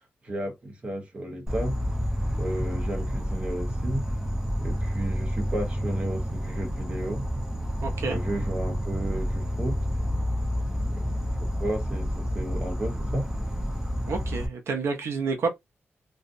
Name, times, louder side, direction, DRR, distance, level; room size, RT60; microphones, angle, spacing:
voice 1, 0.2-1.8 2.4-4.1 4.6-7.2 8.0-9.8 10.9-11.1 11.6-13.2, right 1 dB, 30° right, 0.8 m, -33 dB
Insect, 1.5-14.5, equal, 10° right, 0.5 m, -29 dB
voice 2, 7.8-8.2 14.1-15.5, right 4 dB, 85° right, 0.5 m, -29 dB
2.6 x 2.0 x 2.4 m
wide cardioid pair, 175°, 4 cm